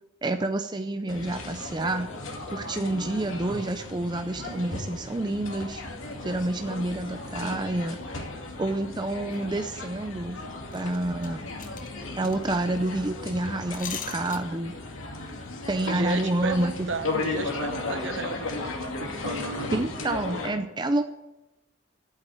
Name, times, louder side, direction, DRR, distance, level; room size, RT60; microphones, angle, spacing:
voice 1, 0.2-2.1 2.5-5.8 6.2-8.0 8.6-10.4 10.7-11.5 12.1-14.7 15.7-16.9 19.7-21.0, right 2 dB, 20° right, 8 dB, 0.5 m, -28 dB
sound 1, 1.1-20.5, left 2 dB, 85° left, 2.3 m, -35 dB
sound 2, 9.3-9.4 9.8-10.1 10.4-10.5 10.7-14.8 15.1-15.4, left 8 dB, 40° left, 1.0 m, -42 dB
voice 2, 15.8-19.8, right 3 dB, 65° right, 10 dB, 1.0 m, -35 dB
8.7 x 8.3 x 9.1 m, 0.97 s
head